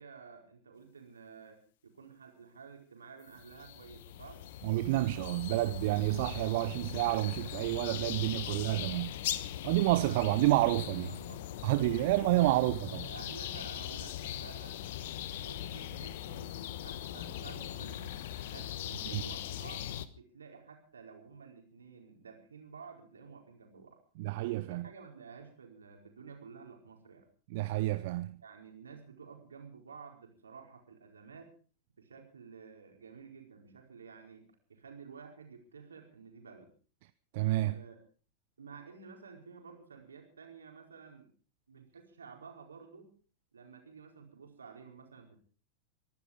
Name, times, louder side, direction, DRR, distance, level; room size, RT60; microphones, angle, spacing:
voice 1, 0.0-4.4 8.1-8.6 9.9-10.2 10.8-12.2 12.9-14.8 15.4-18.2 18.5-19.9 20.1-24.0 24.6-27.3 28.4-31.5 32.0-36.7 37.6-38.0 38.6-41.3 41.7-43.1 43.5-45.4, right 5 dB, 70° right, 4.6 m, -52 dB
sound 1, 3.3-20.1, left 12 dB, 55° left, 1.1 m, -40 dB
voice 2, 4.6-9.2 9.6-11.1 11.6-13.1 19.1-19.2 24.2-24.8 27.5-28.4 37.3-37.8, right 17 dB, 50° right, 0.7 m, -29 dB
23.5 x 12.0 x 5.1 m
figure-of-eight pair, 90°, 0 cm